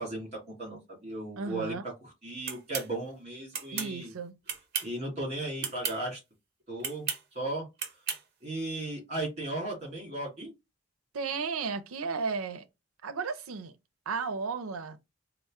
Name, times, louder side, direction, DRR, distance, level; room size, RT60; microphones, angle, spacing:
voice 1, 0.0-4.1 4.8-6.2 6.7-7.1 7.3-7.7 8.4-10.5, right 2 dB, 30° right, 2.0 m, -36 dB
voice 2, 1.4-1.8 3.7-4.3 11.1-12.6 13.0-13.7 14.1-15.0, right 5 dB, 90° right, 0.5 m, -34 dB
sound 1, 2.5-2.9 3.5-3.9 4.5-5.0 5.6-6.0 6.8-7.2 7.8-8.2, right 7 dB, 50° right, 0.7 m, -34 dB
4.2 x 2.0 x 3.5 m
head